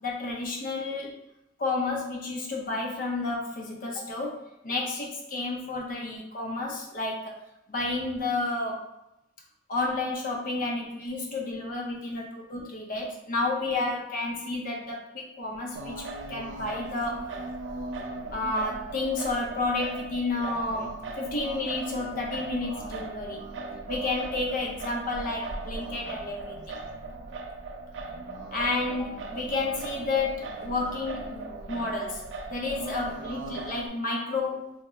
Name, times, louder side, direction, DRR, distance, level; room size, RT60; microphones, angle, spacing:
voice 1, 0.0-1.2 1.6-7.4 7.7-8.9 9.7-17.4 18.3-23.5 23.9-26.8 28.5-34.7, left 3 dB, 50° left, -1 dB, 0.6 m, -31 dB
Singing, 15.7-33.9, right 3 dB, 85° right, 0.4 m, -38 dB
3.6 x 2.1 x 3.0 m, 0.86 s
head